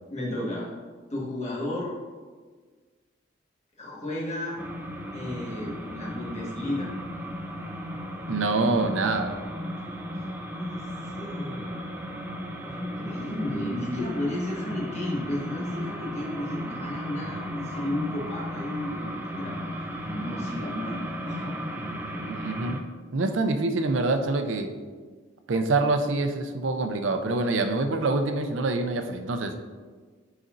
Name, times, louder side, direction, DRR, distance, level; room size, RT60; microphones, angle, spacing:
voice 1, 0.1-0.7 1.1-1.9 3.8-4.6 5.1-6.9 10.1-11.8 12.6-19.6 20.0-22.2, left 1 dB, 35° left, -5 dB, 1.5 m, -33 dB
sound 1, 4.6-22.8, equal, 10° right, 0.4 m, -35 dB
voice 2, 8.3-9.4 22.3-22.8 23.1-24.7 25.5-29.5, right 3 dB, 85° right, 7 dB, 0.5 m, -25 dB
10.0 x 4.1 x 2.6 m, 1.5 s
head